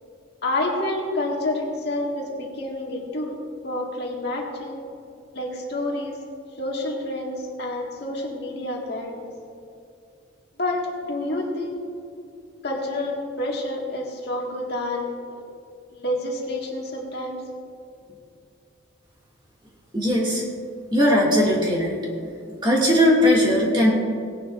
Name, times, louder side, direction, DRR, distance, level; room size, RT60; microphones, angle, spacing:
voice 1, 0.4-3.4 3.6-4.8 5.3-6.2 6.6-9.3 10.6-11.8 12.6-15.4 15.9-17.4, left 1 dB, 55° left, -2 dB, 1.8 m, -28 dB
voice 2, 19.9-20.4 20.9-22.3 22.6-23.9, left 1 dB, 25° right, -4 dB, 2.1 m, -19 dB
18.5 x 11.0 x 2.5 m, 2.4 s
head